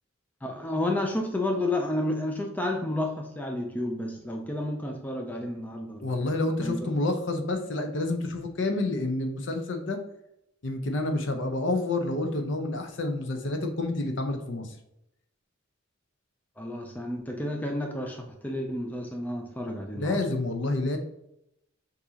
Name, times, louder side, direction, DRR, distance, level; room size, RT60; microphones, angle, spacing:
voice 1, 0.4-6.1 6.6-6.9 16.6-20.2, left 1 dB, 10° left, 0.4 m, -31 dB
voice 2, 6.0-10.0 10.6-14.7 19.9-21.0, left 2 dB, 60° left, 0.7 m, -29 dB
6.1 x 2.7 x 2.8 m
head